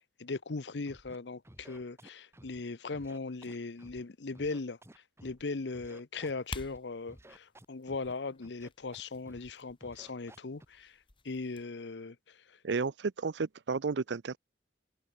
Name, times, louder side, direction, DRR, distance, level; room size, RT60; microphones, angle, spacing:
voice 1, 0.2-4.8 5.2-11.0 11.2-12.4, left 3 dB, 75° left, 0.8 m, -39 dB
Scratching (performance technique), 0.9-1.2 1.4-2.6 2.9-4.0 4.3-5.4 5.7-6.8 7.1-8.1 8.4-9.0 9.3-9.5 9.8-10.6, right 1 dB, 15° right, 2.1 m, -54 dB
sound 1, 6.1-11.7, left 3 dB, 30° left, 1.4 m, -50 dB
voice 2, 12.6-14.4, right 4 dB, 75° right, 0.6 m, -32 dB
head